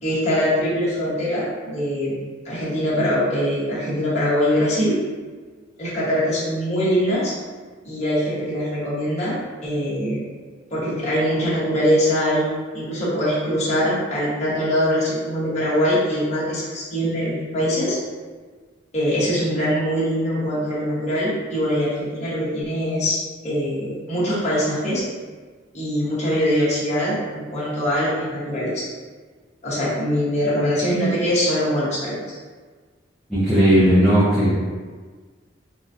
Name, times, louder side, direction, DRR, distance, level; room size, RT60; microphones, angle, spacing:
voice 1, 0.0-2.1 2.4-5.0 5.8-7.3 7.8-10.2 10.7-12.5 12.7-18.0 18.9-25.0 25.7-28.8 29.6-32.2, equal, 35° left, -10 dB, 1.2 m, -22 dB
voice 2, 33.3-34.5, right 1 dB, ahead, -13 dB, 0.6 m, -16 dB
4.1 x 2.3 x 2.6 m, 1.5 s
head